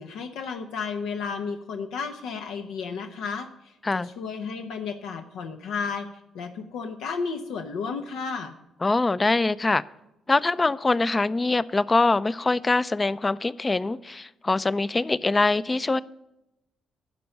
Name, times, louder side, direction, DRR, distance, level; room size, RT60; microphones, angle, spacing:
voice 1, 0.0-6.1 6.3-8.5, left 5 dB, 85° left, 5 dB, 0.9 m, -33 dB
voice 2, 8.8-9.8 10.3-16.0, left 3 dB, 25° left, 18 dB, 0.4 m, -23 dB
11.5 x 5.3 x 8.8 m, 0.90 s
cardioid pair, 90°, 0 cm